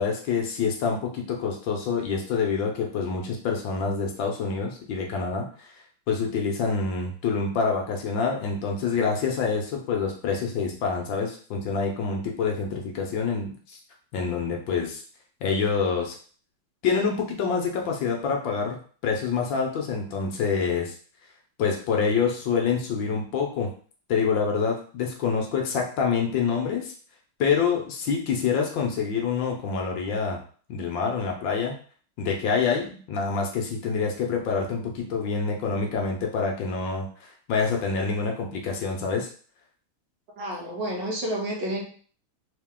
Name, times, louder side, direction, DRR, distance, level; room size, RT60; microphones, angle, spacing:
voice 1, 0.0-5.7 6.1-13.5 14.1-15.0 15.4-16.2 16.8-18.8 19.0-21.0 21.6-23.7 24.1-26.9 27.4-30.4 30.7-31.7 32.2-39.3, left 5 dB, 70° left, 1 dB, 1.4 m, -26 dB
voice 2, 40.4-41.8, right 1 dB, 65° right, -2 dB, 1.5 m, -30 dB
3.6 x 2.9 x 3.6 m, 0.44 s
omnidirectional pair, 2.3 m